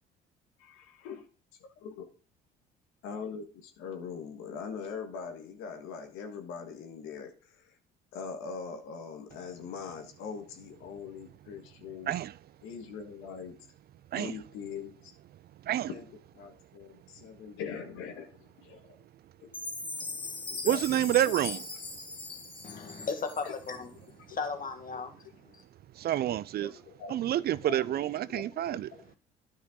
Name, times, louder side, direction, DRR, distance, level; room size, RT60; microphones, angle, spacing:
voice 1, 0.6-1.2 1.8-2.0 3.0-7.8 8.1-12.2 12.6-13.5 14.1-15.1 15.9-16.1 16.3-18.9 19.4-19.5 20.5-21.6 23.4-23.5 24.9-25.0 26.6-27.9 28.3-29.2, left 6 dB, 75° left, 1.7 m, -42 dB
Chime, 19.5-23.7, left 3 dB, 25° left, 2.7 m, -39 dB
voice 2, 20.6-21.6 26.0-26.7 27.1-28.9, right 12 dB, 50° right, 0.4 m, -28 dB
voice 3, 22.6-25.2 25.5-25.6, left 5 dB, 40° left, 1.9 m, -36 dB
9.8 x 5.5 x 3.8 m
hypercardioid pair, 60°, 21 cm